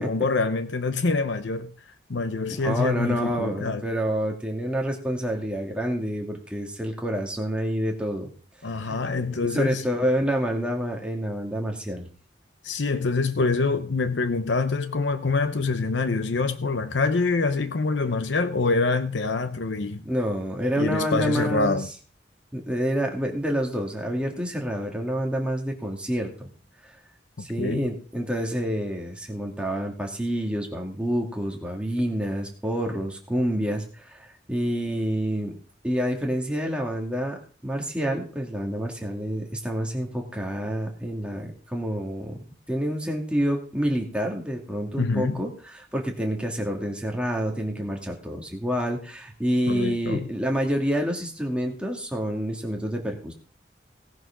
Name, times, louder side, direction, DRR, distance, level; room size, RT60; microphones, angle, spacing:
voice 1, 0.0-1.7 2.1-3.8 8.6-9.8 12.6-20.0 20.8-21.9 27.4-27.9 45.0-45.4 49.7-50.3, left 3 dB, 80° left, 0.8 m, -25 dB
voice 2, 2.5-8.3 8.8-9.0 9.3-12.1 20.0-21.8 22.5-26.5 26.8-26.9 27.4-35.6 35.8-37.4 37.6-42.3 42.7-53.3, equal, 5° right, 2.5 m, -28 dB
18.0 x 6.3 x 6.0 m
head